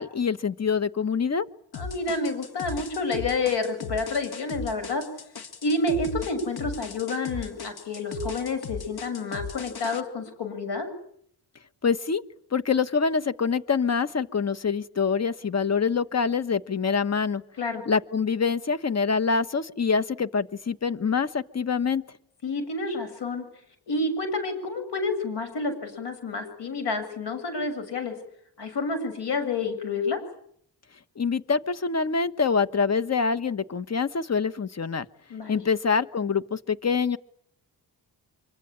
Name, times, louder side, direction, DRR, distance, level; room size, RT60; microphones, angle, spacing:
voice 1, 0.0-1.5 11.8-12.2 12.5-17.4 17.9-22.0 31.2-35.0 35.5-37.2, left 5 dB, 40° left, 12 dB, 1.3 m, -25 dB
voice 2, 1.7-5.1 5.6-10.9 17.6-17.8 22.4-23.5 23.9-28.2 28.6-30.2 35.3-35.7, left 3 dB, 90° left, 9 dB, 7.2 m, -29 dB
sound 1, 1.7-10.0, left 4 dB, 65° left, 2.2 m, -37 dB
25.5 x 24.5 x 8.8 m, 0.68 s
cardioid pair, 85°, 40 cm